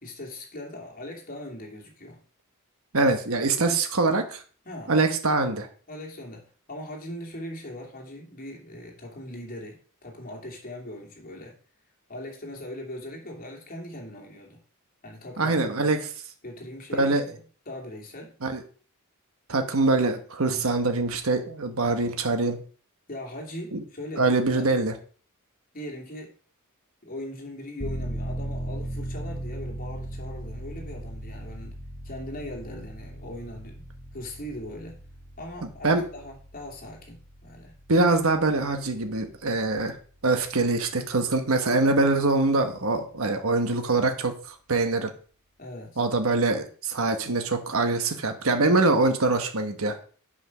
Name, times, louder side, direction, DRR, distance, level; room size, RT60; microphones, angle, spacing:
voice 1, 0.0-2.2 3.5-3.7 4.6-4.9 5.9-11.6 12.1-14.6 15.0-15.8 16.4-17.2 17.7-18.4 20.4-20.7 23.1-24.7 25.7-26.3 27.0-31.8 32.0-33.8 34.1-35.0 35.4-37.7 45.6-46.0, left 1 dB, 40° left, 0 dB, 2.7 m, -40 dB
voice 2, 2.9-4.4 4.9-5.7 15.4-16.0 16.9-17.2 18.4-18.6 19.5-22.6 23.7-23.8 24.2-24.9 35.8-36.0 37.9-40.0 40.2-45.1 46.0-49.9, right 3 dB, 70° right, 6 dB, 1.2 m, -24 dB
sound 1, 27.8-40.3 40.7-40.8, right 1 dB, 10° left, 1.9 m, -38 dB
8.4 x 5.6 x 6.1 m, 0.42 s
head